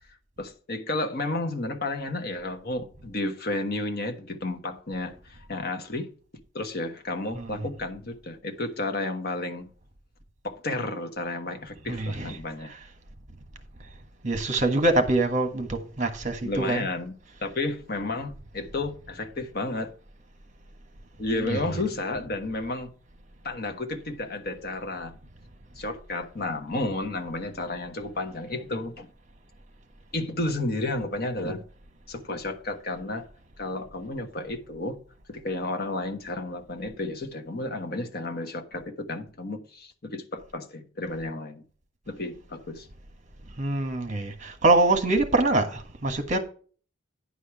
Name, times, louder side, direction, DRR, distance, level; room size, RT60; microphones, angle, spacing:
voice 1, 0.4-6.1 6.5-9.7 10.4-12.7 16.4-17.1 17.4-19.9 21.2-22.9 23.4-25.2 25.8-29.1 30.1-31.6 32.1-33.3 33.6-35.0 35.3-41.6 42.1-42.9, left 2 dB, 50° left, 1.2 m, -32 dB
voice 2, 7.3-7.7 11.9-12.4 12.7-12.9 14.2-16.9 21.3-21.8 43.6-46.4, right 2 dB, 35° right, 1.4 m, -25 dB
10.0 x 4.9 x 5.8 m
head